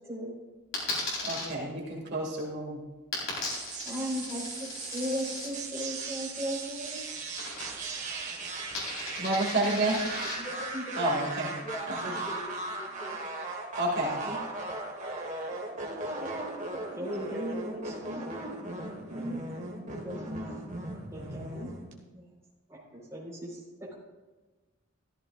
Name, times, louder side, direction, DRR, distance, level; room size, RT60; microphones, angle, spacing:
Coin (dropping), 0.7-1.5 3.1-5.5 7.4-8.0 8.3-10.3, left 3 dB, 65° left, 4.3 m, -37 dB
voice 1, 1.3-2.8 9.2-10.0 11.0-11.5 11.9-12.1 13.8-14.2, right 2 dB, 50° right, -3 dB, 2.4 m, -29 dB
sound 1, 3.5-21.9, right 2 dB, 35° right, 1.6 m, -38 dB
voice 2, 3.8-4.4 4.9-7.0 10.7-10.8 14.3-14.4 15.9-18.2 19.1-20.6 21.1-21.7 22.1-22.3 22.7-23.6, equal, 15° right, -6 dB, 4.5 m, -37 dB
voice 3, 10.4-11.1 11.6-13.2, equal, 20° left, -4 dB, 2.1 m, -42 dB
14.5 x 14.0 x 2.5 m, 1.2 s
head